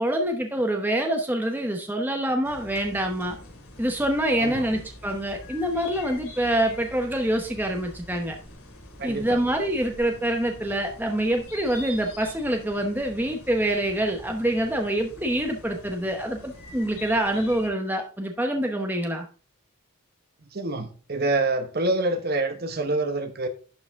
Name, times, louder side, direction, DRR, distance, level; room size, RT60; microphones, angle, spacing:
voice 1, 0.0-3.4 3.8-8.4 9.0-19.3, right 1 dB, 10° right, 0.8 m, -26 dB
sound 1, 2.4-17.7, left 1 dB, 85° left, 2.9 m, -45 dB
voice 2, 9.0-9.4 20.4-23.5, right 2 dB, 45° right, 1.0 m, -26 dB
11.5 x 4.8 x 3.5 m
head